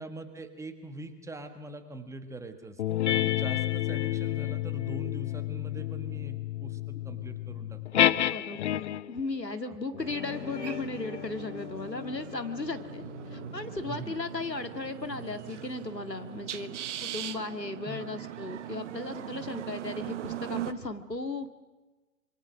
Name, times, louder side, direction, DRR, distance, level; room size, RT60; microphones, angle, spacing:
voice 1, 0.0-8.1 9.6-9.8 13.9-14.1 17.8-18.1, right 2 dB, 5° right, 8 dB, 1.4 m, -43 dB
sound 1, 2.8-9.2 9.9-14.9, left 13 dB, 45° left, 0.7 m, -31 dB
voice 2, 8.3-21.5, left 3 dB, 90° left, 8 dB, 2.1 m, -36 dB
sound 2, 10.0-20.7, right 11 dB, 45° right, 1.2 m, -40 dB
26.0 x 23.5 x 6.3 m, 1.2 s
figure-of-eight pair, 115°, 48 cm